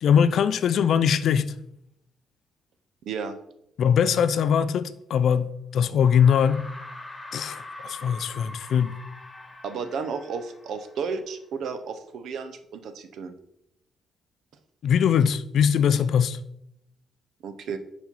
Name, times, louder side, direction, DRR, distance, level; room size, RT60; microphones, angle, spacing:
voice 1, 0.0-1.5 3.8-6.6 7.3-8.9 14.8-16.4, left 8 dB, 65° left, 0.4 m, -21 dB
voice 2, 3.0-3.4 9.6-13.4 17.4-17.8, right 5 dB, 70° right, 0.6 m, -33 dB
sound 1, 5.2-5.3 6.0-11.2, left 2 dB, 10° left, 1.2 m, -43 dB
4.7 x 4.3 x 5.3 m
cardioid pair, 90°, 0 cm